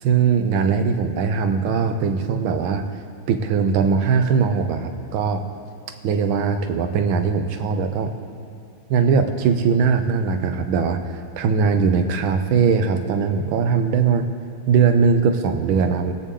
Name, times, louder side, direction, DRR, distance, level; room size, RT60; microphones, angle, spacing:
voice 1, 0.0-2.9 3.3-5.4 6.0-8.1 8.9-11.0 11.4-14.3 14.7-16.1, right 5 dB, 80° right, 7 dB, 1.6 m, -20 dB
21.5 x 8.3 x 3.7 m, 2.4 s
omnidirectional pair, 2.2 m